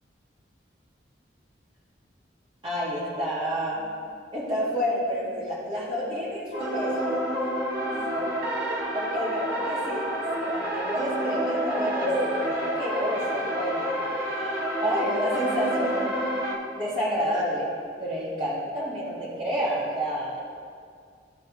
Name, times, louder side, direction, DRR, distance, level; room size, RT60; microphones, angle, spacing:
voice 1, 2.6-3.9 4.3-7.1 7.9-8.3 8.9-10.1 10.4-12.1 12.4-16.2 16.8-17.7 18.0-20.4, equal, 30° right, -8 dB, 2.0 m, -30 dB
sound 1, 6.5-16.5, right 1 dB, 55° right, 1.7 m, -28 dB
15.5 x 5.2 x 3.1 m, 2.1 s
head